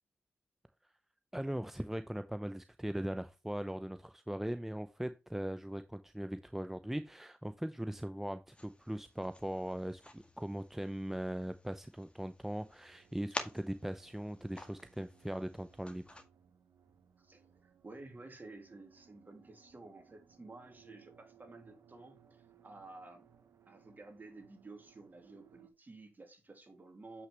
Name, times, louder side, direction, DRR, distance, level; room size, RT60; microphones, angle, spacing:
voice 1, 1.3-16.2, right 1 dB, 5° right, 0.6 m, -40 dB
sound 1, 8.5-16.2, left 1 dB, 20° left, 1.9 m, -50 dB
sound 2, 12.9-25.7, right 8 dB, 70° right, 1.1 m, -65 dB
voice 2, 17.2-23.2 23.7-27.3, right 2 dB, 35° right, 2.9 m, -53 dB
7.6 x 6.1 x 3.4 m
supercardioid pair, 45°, 5 cm